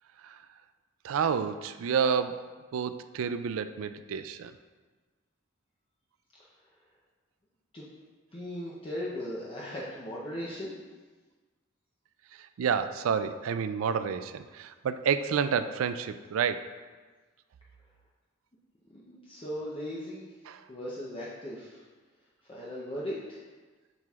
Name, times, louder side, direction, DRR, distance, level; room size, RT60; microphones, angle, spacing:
voice 1, 1.0-2.4 2.7-4.5 12.6-16.7 20.5-20.6, right 6 dB, 75° right, 11 dB, 0.3 m, -29 dB
voice 2, 8.3-10.7 18.9-20.3 20.7-21.8 22.5-23.4, left 1 dB, 25° left, -7 dB, 0.7 m, -38 dB
7.6 x 5.8 x 2.4 m, 1.3 s
head